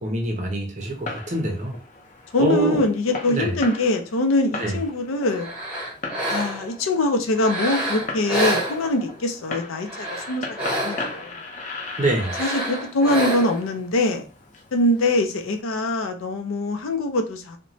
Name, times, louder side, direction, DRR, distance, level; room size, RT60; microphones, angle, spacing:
voice 1, 0.0-1.7 2.4-2.8 3.3-3.6 4.6-4.7 12.0-12.4, right 1 dB, 35° right, 0 dB, 0.5 m, -25 dB
Fireworks, 0.8-15.6, left 3 dB, 35° left, 0.6 m, -38 dB
voice 2, 2.3-5.5 6.3-11.3 12.4-14.3 14.7-17.6, left 1 dB, 90° left, 5 dB, 0.5 m, -23 dB
sound 1, 5.3-6.8 7.3-9.2 9.8-11.3 12.1-13.7, right 1 dB, 10° right, 0.8 m, -28 dB
2.9 x 2.1 x 2.6 m, 0.33 s
head